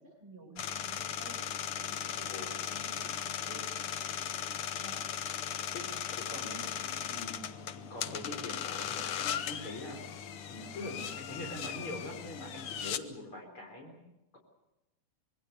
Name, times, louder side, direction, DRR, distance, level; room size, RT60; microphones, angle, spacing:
voice 1, 0.0-3.7 4.8-5.1 6.5-6.6, right 2 dB, 5° right, 3 dB, 7.3 m, -52 dB
sound 1, 0.6-13.0, left 9 dB, 75° left, 1.3 m, -37 dB
voice 2, 2.1-2.5 5.7-5.8 6.1-10.0 10.5-14.0, left 2 dB, 40° left, 1 dB, 4.7 m, -44 dB
25.5 x 22.5 x 6.8 m, 0.96 s
omnidirectional pair, 3.9 m